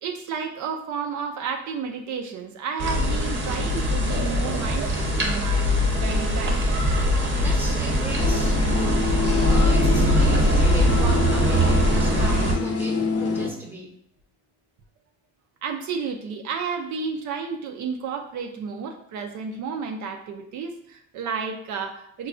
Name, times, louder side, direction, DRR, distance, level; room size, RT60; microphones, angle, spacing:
voice 1, 0.0-5.6 6.0-6.6 15.6-22.3, right 5 dB, 70° right, 4 dB, 0.5 m, -31 dB
sound 1, 2.8-12.5, equal, 40° right, 0.8 m, -21 dB
voice 2, 7.4-9.0 9.5-13.9, right 1 dB, 5° right, -2 dB, 0.8 m, -36 dB
sound 2, 8.2-13.5, left 4 dB, 50° left, 0.6 m, -27 dB
4.8 x 2.2 x 2.4 m, 0.70 s
cardioid pair, 90°, 30 cm